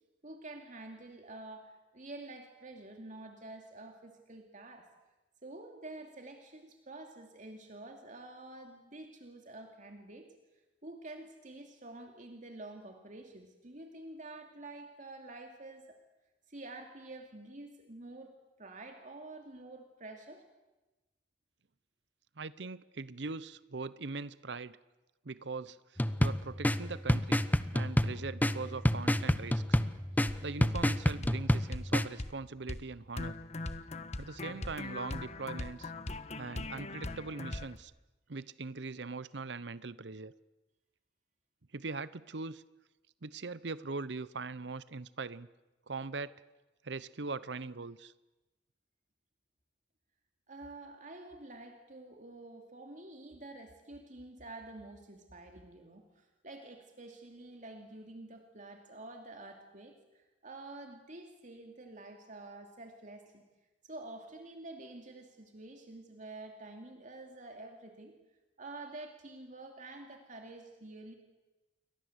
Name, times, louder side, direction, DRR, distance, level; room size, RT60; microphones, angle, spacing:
voice 1, 0.2-4.9 5.4-10.3 10.8-16.0 16.5-20.4 50.5-63.4 63.8-68.2 68.6-71.1, right 2 dB, 45° right, 3 dB, 2.7 m, -48 dB
voice 2, 22.4-24.8 25.2-25.8 26.2-27.4 27.7-29.8 30.4-33.4 34.2-35.9 36.4-37.9 38.3-40.3 41.7-42.6 43.2-45.5 45.9-46.3 46.8-48.1, right 3 dB, 70° right, 17 dB, 0.8 m, -41 dB
sound 1, 26.0-32.1, equal, 10° left, 0.9 m, -29 dB
sound 2, 30.3-30.4 30.7-30.9 31.2-31.4 31.7-31.9 32.2-32.4 32.7-32.9 33.2-37.8, left 2 dB, 40° left, 1.3 m, -40 dB
29.0 x 23.5 x 8.1 m, 1.1 s
head